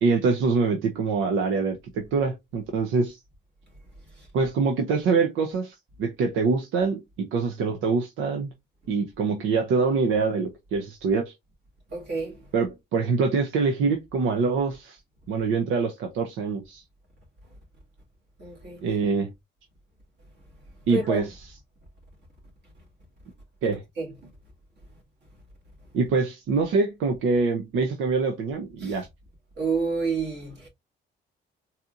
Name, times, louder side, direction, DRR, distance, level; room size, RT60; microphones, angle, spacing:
voice 1, 0.0-3.2 4.3-8.5 8.9-11.3 12.5-15.0 15.3-16.8 18.8-19.3 20.9-21.3 23.6-23.8 25.9-29.1, right 4 dB, 85° right, 0.7 m, -25 dB
voice 2, 11.9-12.5 18.4-18.8 20.9-21.2 23.6-23.7 24.0-24.1 28.8-29.0 29.6-30.7, right 3 dB, 60° right, 2.1 m, -29 dB
4.1 x 2.7 x 2.4 m
cardioid pair, 90°, 20 cm